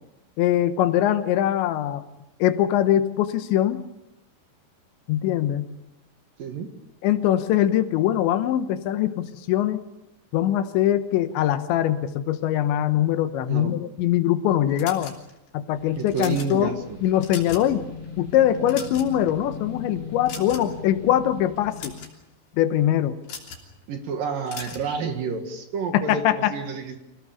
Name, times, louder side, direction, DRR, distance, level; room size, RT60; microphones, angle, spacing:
voice 1, 0.4-2.0 2.4-3.8 5.1-5.7 7.0-9.8 10.3-15.1 15.5-16.7 17.0-17.9 18.2-22.0 22.6-23.2 25.9-26.5, left 11 dB, 80° left, 10 dB, 3.3 m, -22 dB
voice 2, 6.4-6.7 13.5-13.8 16.0-17.0 23.9-27.0, right 5 dB, 60° right, 5 dB, 2.9 m, -29 dB
sound 1, 14.8-15.5 16.0-16.5 17.0-17.7 18.0-18.2 18.6-19.3 20.3-20.8 21.6-22.1 23.2-23.7 24.5-24.9, left 5 dB, 60° left, 4.9 m, -38 dB
sound 2, 15.7-22.0, left 6 dB, 15° left, 5.7 m, -39 dB
27.0 x 17.5 x 6.9 m, 0.90 s
omnidirectional pair, 5.2 m